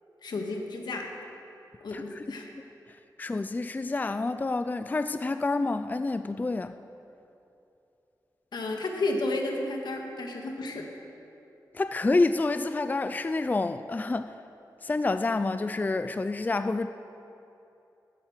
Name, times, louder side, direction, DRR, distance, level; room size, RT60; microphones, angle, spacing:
voice 1, 0.2-1.0 1.8-2.5 8.5-10.8, left 2 dB, 80° left, 2 dB, 1.7 m, -32 dB
voice 2, 1.9-2.2 3.2-6.8 11.7-14.3 14.8-16.9, left 3 dB, 25° left, 10 dB, 0.4 m, -28 dB
13.5 x 9.6 x 6.6 m, 2.8 s
wide cardioid pair, 85°, 7 cm